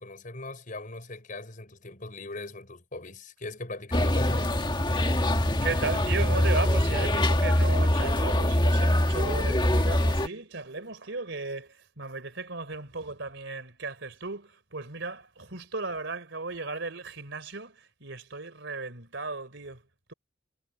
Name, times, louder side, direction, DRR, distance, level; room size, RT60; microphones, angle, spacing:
voice 1, 0.0-4.5, left 2 dB, 45° left, 5.4 m, -39 dB
sound 1, 3.9-10.3, left 1 dB, 25° left, 1.7 m, -24 dB
voice 2, 5.6-19.8, right 3 dB, 70° right, 3.7 m, -36 dB
head